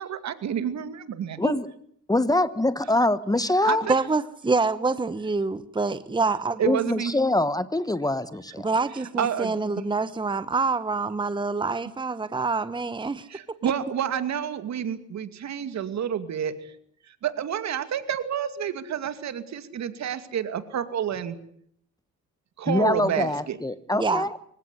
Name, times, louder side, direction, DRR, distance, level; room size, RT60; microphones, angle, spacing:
voice 1, 0.0-1.4 3.6-4.0 6.6-7.1 9.2-9.6 13.3-16.5 17.2-21.4 22.6-23.6, right 9 dB, 65° right, 11 dB, 2.5 m, -29 dB
voice 2, 2.1-3.8 6.7-8.6 22.7-24.4, left 2 dB, 10° left, 15 dB, 1.2 m, -24 dB
voice 3, 3.9-6.8 8.6-13.3 13.6-13.7 23.9-24.2, right 3 dB, 15° right, 13 dB, 1.1 m, -26 dB
25.5 x 16.5 x 9.8 m, 0.67 s
cardioid pair, 90°, 30 cm